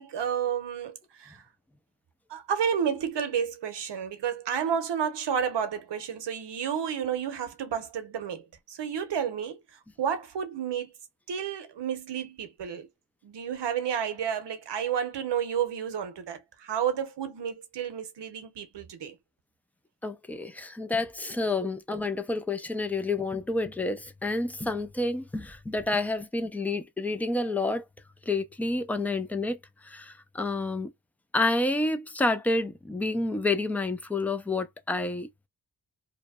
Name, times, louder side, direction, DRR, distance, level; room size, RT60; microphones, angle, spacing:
voice 1, 0.0-1.4 2.3-10.9 11.3-12.9 13.2-19.2 21.6-21.7, right 8 dB, 75° right, 0.8 m, -31 dB
voice 2, 20.0-27.8 28.3-29.6 29.8-30.9 31.3-35.3, left 2 dB, 5° left, 0.3 m, -29 dB
2.7 x 2.1 x 2.3 m
wide cardioid pair, 95°, 42 cm